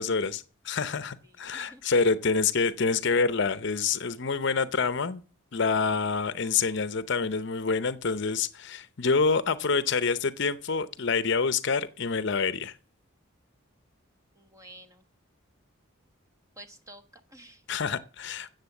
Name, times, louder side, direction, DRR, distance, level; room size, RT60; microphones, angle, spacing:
voice 1, 0.0-5.2 5.5-12.8 17.7-18.5, left 4 dB, 55° left, 0.7 m, -27 dB
voice 2, 1.2-2.1 14.3-15.1 16.6-17.6, right 1 dB, 15° right, 1.1 m, -51 dB
13.5 x 7.8 x 7.1 m
head